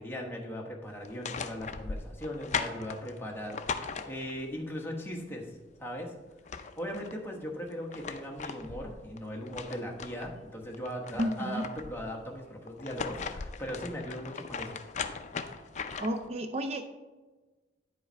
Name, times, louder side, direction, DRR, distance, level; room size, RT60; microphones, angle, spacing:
voice 1, 0.0-5.5 5.8-6.1 6.8-14.8, equal, 15° left, -1 dB, 1.2 m, -39 dB
sound 1, 1.0-4.5 6.0-6.1 6.3-7.2 7.7-10.3 10.7-12.1 12.7-16.3, left 5 dB, 40° left, 0.5 m, -38 dB
voice 2, 11.1-11.7 16.0-16.8, equal, 35° right, 7 dB, 0.4 m, -32 dB
9.6 x 5.5 x 4.5 m, 1.3 s
head